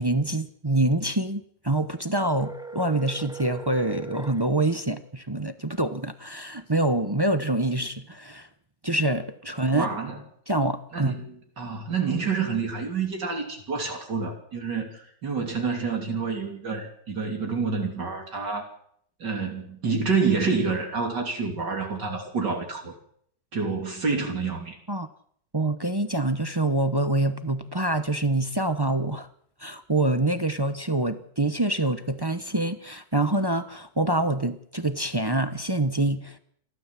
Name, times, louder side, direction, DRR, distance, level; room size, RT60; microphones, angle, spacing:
voice 1, 0.0-8.5 8.8-9.9 10.5-11.2 24.9-25.1 25.5-29.3 29.6-36.4, right 2 dB, 25° right, 9 dB, 0.6 m, -26 dB
sound 1, 2.4-4.4, right 3 dB, 5° right, 1.1 m, -39 dB
voice 2, 9.7-10.2 10.9-18.7 19.2-22.9 23.5-24.8, right 5 dB, 65° right, 2 dB, 3.7 m, -28 dB
28.5 x 13.0 x 7.5 m, 0.67 s
omnidirectional pair, 2.0 m